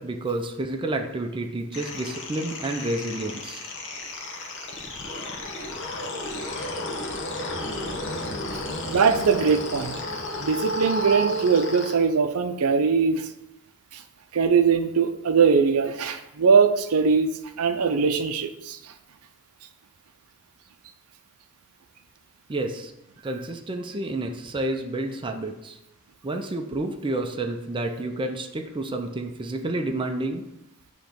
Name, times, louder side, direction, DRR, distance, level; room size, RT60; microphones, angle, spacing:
voice 1, 0.0-3.6 22.5-22.9 23.2-25.8 26.2-30.4, right 2 dB, 20° right, 3 dB, 0.5 m, -30 dB
sound 1, 1.7-11.9, equal, 60° left, 1.0 m, -32 dB
voice 2, 8.9-10.0 10.4-13.3 13.9-14.0 14.3-17.3 17.6-18.9, right 5 dB, 70° right, 8 dB, 0.5 m, -21 dB
8.1 x 3.1 x 5.1 m, 0.85 s
head